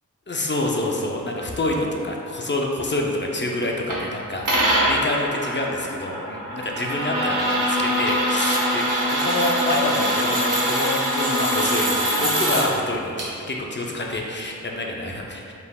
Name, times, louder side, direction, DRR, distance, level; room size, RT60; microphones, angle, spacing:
voice 1, 0.3-15.5, left 1 dB, 35° left, -1 dB, 0.6 m, -27 dB
sound 1, 3.9-4.0 4.4-12.6 13.2-13.3, right 1 dB, 65° right, 1.0 m, -24 dB
Bowed string instrument, 6.7-12.2, left 1 dB, 90° right, 1.2 m, -27 dB
5.1 x 3.4 x 2.3 m, 2.5 s
cardioid pair, 45°, 34 cm